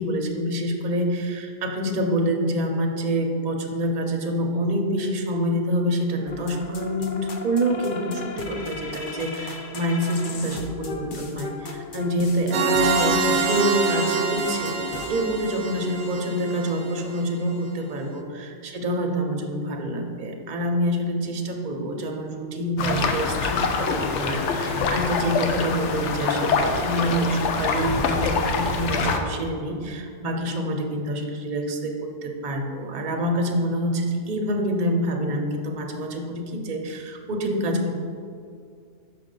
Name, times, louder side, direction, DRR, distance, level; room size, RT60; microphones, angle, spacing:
voice 1, 0.0-37.9, equal, 45° right, 2 dB, 0.7 m, -26 dB
sound 1, 6.3-15.1, left 3 dB, 55° left, 0.7 m, -36 dB
sound 2, 12.5-17.2, right 3 dB, 75° right, 0.9 m, -25 dB
sound 3, 22.8-29.2, left 4 dB, 85° left, 0.9 m, -25 dB
6.3 x 5.1 x 3.8 m, 2.2 s
omnidirectional pair, 1.2 m